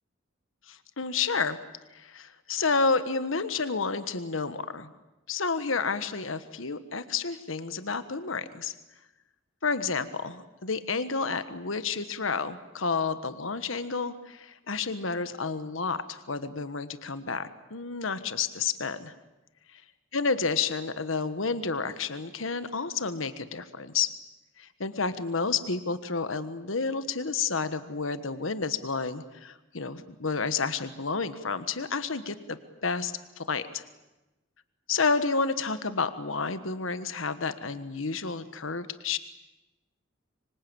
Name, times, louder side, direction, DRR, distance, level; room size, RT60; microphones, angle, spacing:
voice 1, 0.7-1.6 1.9-4.9 5.3-8.7 9.6-19.1 20.1-24.1 24.6-33.8 34.9-39.2, left 4 dB, 80° left, 12 dB, 1.4 m, -30 dB
25.5 x 25.0 x 8.7 m, 1.0 s
head